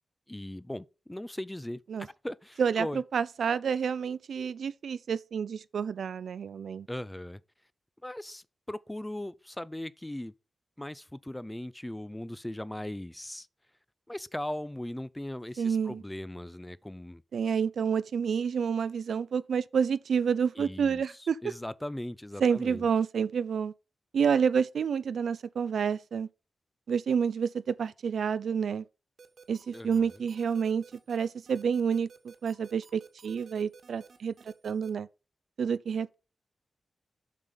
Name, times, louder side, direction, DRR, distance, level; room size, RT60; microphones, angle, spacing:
voice 1, 0.3-3.0 6.9-7.4 8.0-10.3 10.8-13.5 14.1-17.2 20.6-21.0 21.4-22.9 29.7-30.1, left 1 dB, 10° left, 0.4 m, -39 dB
voice 2, 2.6-6.9 15.6-16.0 17.3-21.4 22.4-23.7 24.1-26.3 26.9-28.8 29.5-35.1 35.6-36.1, right 6 dB, 85° right, 0.5 m, -29 dB
sound 1, 29.2-34.9, right 5 dB, 65° right, 1.7 m, -53 dB
7.4 x 5.8 x 5.1 m
wide cardioid pair, 100°, 0 cm